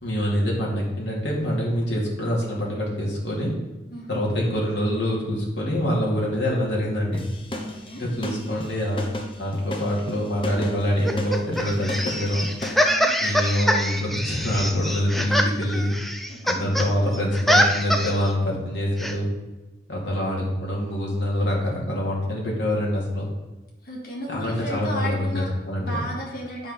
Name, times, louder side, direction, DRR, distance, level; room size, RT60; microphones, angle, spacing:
voice 1, 0.0-3.5 4.1-7.3 8.0-9.1 9.4-12.5 13.2-16.0 16.5-19.3 19.9-23.3 24.3-26.0, equal, 90° left, -4 dB, 2.5 m, -25 dB
sound 1, 7.1-12.9, left 1 dB, 30° left, 0.8 m, -34 dB
voice 2, 7.6-8.4 12.9-13.1 15.0-15.1 16.3-16.7 23.8-26.7, equal, 55° left, -3 dB, 2.0 m, -34 dB
sound 2, 11.0-16.9 17.1-18.3 19.0-19.1, equal, ahead, 0.4 m, -24 dB
8.3 x 5.3 x 5.5 m, 1.1 s
head